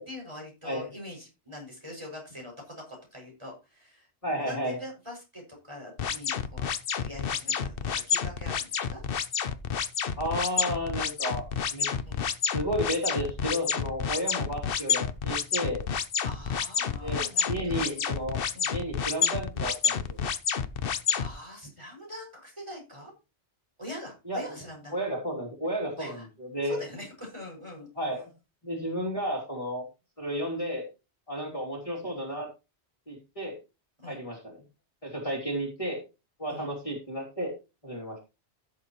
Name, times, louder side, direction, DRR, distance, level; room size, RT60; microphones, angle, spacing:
voice 1, 0.1-6.7 7.0-9.0 12.1-12.3 16.2-18.0 18.5-18.7 21.1-23.1 23.8-24.9 26.0-26.3 26.6-27.9 34.0-34.2 36.5-36.7, left 1 dB, 25° right, -1 dB, 6.5 m, -43 dB
voice 2, 4.2-4.8 10.2-11.9 12.5-15.8 17.0-18.4 18.7-20.2 24.3-24.4 24.9-26.8 28.0-28.3 28.6-29.8 30.2-30.8 31.3-32.5 33.1-33.6 34.1-34.6 35.0-36.0 36.4-37.5 37.8-38.2, equal, 30° left, -2 dB, 3.1 m, -32 dB
sound 1, 6.0-21.3, left 7 dB, 60° left, 1.0 m, -29 dB
15.5 x 7.7 x 3.1 m, 0.29 s
omnidirectional pair, 1.1 m